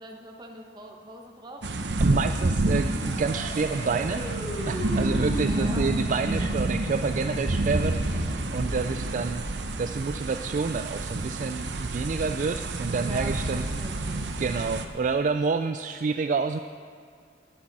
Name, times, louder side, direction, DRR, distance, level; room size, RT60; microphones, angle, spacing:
voice 1, 0.0-1.7 5.5-5.9 12.9-14.4, right 1 dB, 25° right, 1 dB, 1.2 m, -43 dB
sound 1, 1.6-14.9, right 2 dB, 80° right, 0.9 m, -29 dB
voice 2, 2.0-4.2 4.7-13.6 14.4-16.6, right 4 dB, 45° right, 8 dB, 0.3 m, -28 dB
sound 2, 2.6-9.5, equal, 45° left, 2.8 m, -37 dB
18.5 x 9.8 x 4.2 m, 2.2 s
head